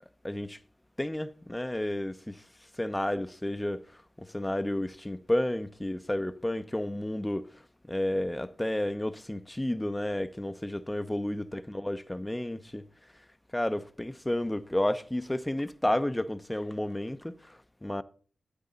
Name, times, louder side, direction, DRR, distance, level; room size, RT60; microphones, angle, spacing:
voice 1, 0.2-0.6 1.0-2.4 2.8-3.8 4.2-7.5 7.9-12.8 13.5-18.0, left 1 dB, 10° left, 0.8 m, -31 dB
13.5 x 8.8 x 4.1 m
cardioid pair, 55°, 0 cm